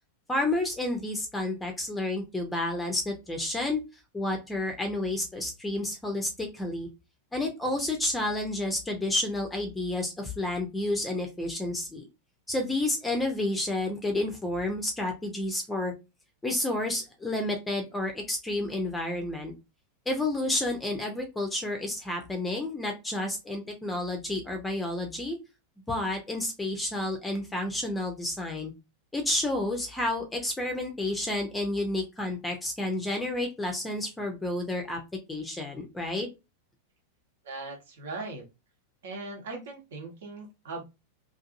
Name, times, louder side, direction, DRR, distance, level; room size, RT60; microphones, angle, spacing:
voice 1, 0.3-3.8 4.1-6.9 7.3-12.1 12.5-15.9 16.4-19.5 20.1-25.4 25.9-28.7 29.1-35.0 35.3-36.3, left 1 dB, 10° left, 3 dB, 0.5 m, -30 dB
voice 2, 37.4-38.4 39.0-40.8, right 3 dB, 60° right, 1 dB, 0.9 m, -39 dB
2.6 x 2.5 x 2.5 m, 0.26 s
figure-of-eight pair, 90°, 0 cm